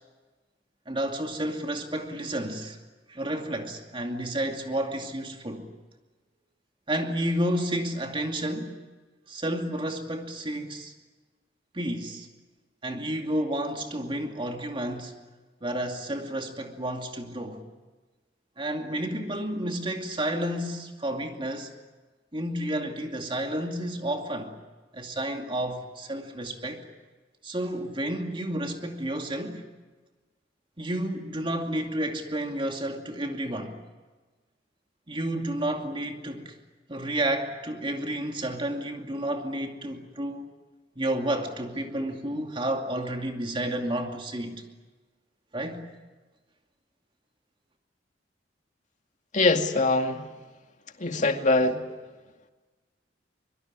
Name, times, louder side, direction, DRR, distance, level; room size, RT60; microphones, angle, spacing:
voice 1, 0.9-2.8 3.1-5.7 6.9-8.8 9.3-10.9 11.7-12.3 12.8-15.1 15.6-17.6 18.6-21.7 22.3-24.5 24.9-26.9 27.4-29.6 30.8-33.8 35.1-36.6 36.9-40.5 41.0-44.6 45.5-45.9, right 1 dB, 30° right, 2.5 m, -31 dB
voice 2, 49.3-50.3 51.0-51.8, left 2 dB, 45° left, 2.3 m, -23 dB
24.0 x 23.5 x 9.7 m
head